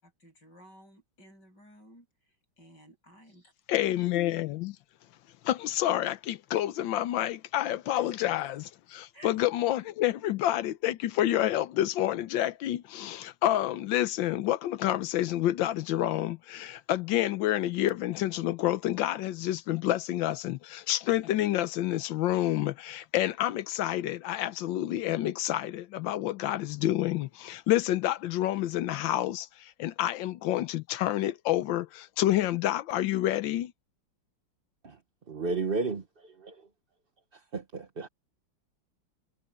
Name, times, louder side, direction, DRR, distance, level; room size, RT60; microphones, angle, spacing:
voice 1, 0.0-2.1 2.6-3.5 7.9-8.4 9.1-9.3, right 1 dB, 55° left, 8.7 m, -54 dB
voice 2, 3.7-4.8 5.4-8.6 8.9-33.7, left 13 dB, 70° left, 1.3 m, -28 dB
voice 3, 35.3-36.0 36.4-36.5 37.5-38.1, right 4 dB, 30° right, 1.1 m, -32 dB
omnidirectional pair, 2.3 m